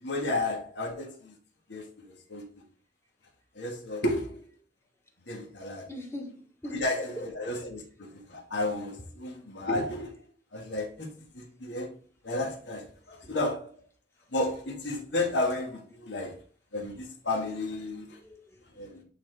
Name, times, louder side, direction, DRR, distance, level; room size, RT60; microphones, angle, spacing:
voice 1, 0.0-1.3 1.7-2.6 3.5-4.4 5.2-5.9 6.6-10.1 10.5-11.9 12.2-13.7 14.3-16.4 16.7-18.2 18.8-19.0, left 2 dB, 80° left, 1.6 m, -32 dB
voice 2, 5.9-6.8 7.2-7.3 13.2-13.3 18.2-19.0, equal, 15° left, 1.3 m, -42 dB
8.7 x 4.2 x 3.4 m
head